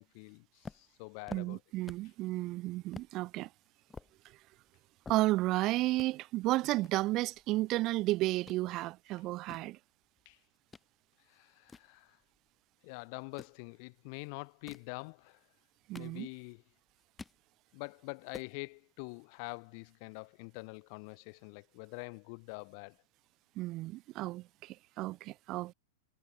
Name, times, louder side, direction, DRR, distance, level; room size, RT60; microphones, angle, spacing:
voice 1, 0.0-1.6 10.3-10.4 11.3-12.2 12.8-15.4 16.0-16.6 17.7-23.0, left 35 dB, 50° left, 4.0 m, -45 dB
sound 1, 0.6-2.2 2.5-2.6 2.9-3.1 3.6-5.6 5.9-6.1 6.8-8.0 8.3-8.6 9.2-10.9 11.3-12.6 13.2-13.6 14.4-14.9 15.6-16.6 16.9-17.4 17.8-17.9 18.1-18.5, left 4 dB, 15° left, 7.7 m, -51 dB
voice 2, 1.3-3.5 5.1-9.8 15.9-16.3 23.6-25.7, right 18 dB, 40° right, 2.0 m, -32 dB
hypercardioid pair, 120°, 0 cm